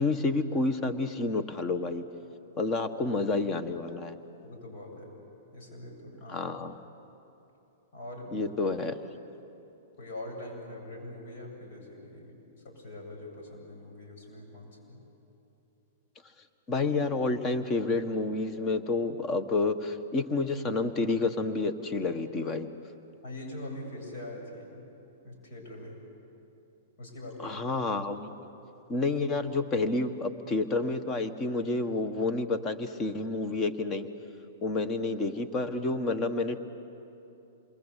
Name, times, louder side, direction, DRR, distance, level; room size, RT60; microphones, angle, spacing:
voice 1, 0.0-2.0 2.6-4.1 6.3-6.8 8.3-9.0 16.7-22.7 27.4-28.3 28.9-34.1 34.6-36.6, left 3 dB, 25° left, 10 dB, 1.6 m, -29 dB
voice 2, 4.4-5.2 5.5-6.4 7.9-8.5 10.0-12.3 12.6-15.0 23.2-24.8 25.2-26.0 27.0-27.6, left 1 dB, 65° left, 1 dB, 7.9 m, -43 dB
27.5 x 22.5 x 8.5 m, 2.9 s
hypercardioid pair, 125°, 0 cm